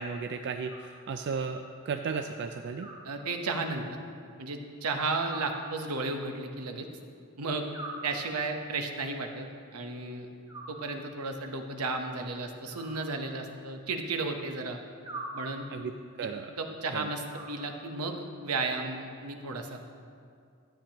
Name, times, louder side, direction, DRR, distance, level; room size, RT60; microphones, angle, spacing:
voice 1, 0.0-2.9 15.7-15.9 16.2-16.5 16.9-17.1, right 5 dB, 50° right, 6 dB, 0.3 m, -34 dB
Animal, 0.6-1.5 2.8-3.8 5.2-6.3 7.7-8.7 10.5-11.4 12.7-13.8 15.0-16.0 17.3-18.2, right 1 dB, 25° right, 2.4 m, -45 dB
voice 2, 3.0-3.8 4.4-6.9 7.4-7.7 8.0-9.5 9.7-10.3 10.7-14.8 15.3-15.7 16.6-19.9, right 3 dB, 80° right, 4 dB, 0.9 m, -33 dB
13.0 x 8.8 x 2.9 m, 2.3 s
head